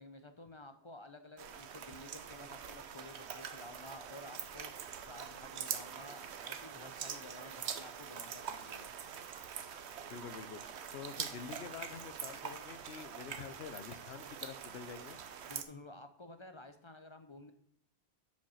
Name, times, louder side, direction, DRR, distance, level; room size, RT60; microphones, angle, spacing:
voice 1, 0.0-8.9 15.5-17.5, left 2 dB, 35° left, 7 dB, 0.5 m, -52 dB
sound 1, 1.4-15.6, right 8 dB, 85° right, 1.0 m, -44 dB
voice 2, 10.1-15.2, left 7 dB, 80° left, 13 dB, 0.9 m, -47 dB
6.9 x 5.1 x 6.3 m, 0.71 s
omnidirectional pair, 1.1 m